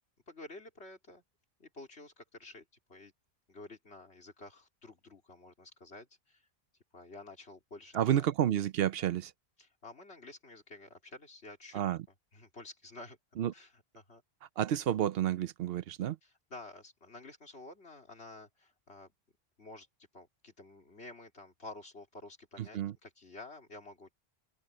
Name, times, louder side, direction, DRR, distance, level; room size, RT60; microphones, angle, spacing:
voice 1, 0.3-1.2 1.6-3.1 3.5-6.4 6.9-8.1 9.6-11.8 12.3-13.2 13.5-14.2 16.5-19.1 19.6-19.9 20.1-24.1, left 2 dB, 85° left, 3.7 m, -51 dB
voice 2, 7.9-9.3 11.7-12.1 13.4-13.5 14.6-16.2 22.6-22.9, right 11 dB, 70° right, 0.8 m, -30 dB
open air
omnidirectional pair, 1.1 m